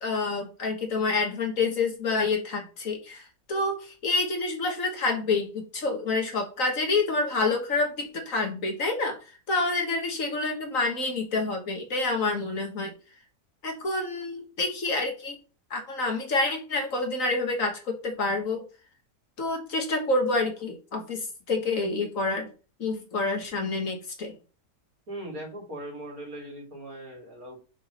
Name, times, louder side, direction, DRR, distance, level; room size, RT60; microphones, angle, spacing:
voice 1, 0.0-9.2 9.5-12.9 13.6-15.4 15.7-18.6 19.4-22.5 22.8-24.3, left 3 dB, 55° left, 4 dB, 1.8 m, -28 dB
voice 2, 25.1-27.6, right 1 dB, 60° right, 1 dB, 3.0 m, -39 dB
6.1 x 4.7 x 5.6 m, 0.34 s
omnidirectional pair, 1.7 m